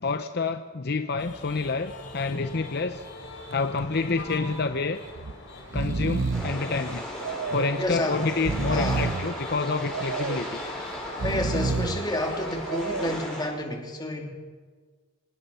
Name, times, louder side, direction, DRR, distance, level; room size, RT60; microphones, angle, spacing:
voice 1, 0.0-3.0 3.5-5.0 5.7-7.0 7.5-10.6, left 4 dB, 55° left, 8 dB, 0.8 m, -28 dB
sound 1, 1.2-13.2, left 2 dB, 70° left, 4.5 m, -43 dB
Breathing, 3.5-3.9 4.2-4.3 5.1-5.3 5.6-6.6 7.2-7.8 8.3-9.3 9.9-10.5 11.1-12.1 12.6-13.3, right 4 dB, 70° right, 0.6 m, -30 dB
sound 2, 6.3-13.5, left 1 dB, 5° left, 6.4 m, -37 dB
voice 2, 7.8-8.2 8.7-9.1 11.2-14.3, left 1 dB, 20° left, 2 dB, 2.9 m, -30 dB
26.5 x 18.5 x 5.7 m, 1.5 s
head